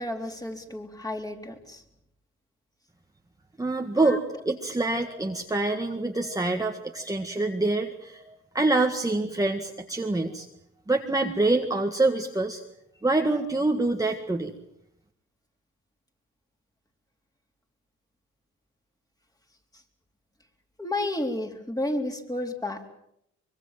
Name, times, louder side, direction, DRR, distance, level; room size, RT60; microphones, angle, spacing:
voice 1, 0.0-1.8 4.0-4.2 20.8-22.8, left 1 dB, 10° left, 4 dB, 3.9 m, -31 dB
voice 2, 3.6-10.5 10.9-12.6 13.0-14.5, right 2 dB, 10° right, 3 dB, 1.9 m, -26 dB
25.0 x 22.5 x 7.6 m, 0.76 s
cardioid pair, 90°, 30 cm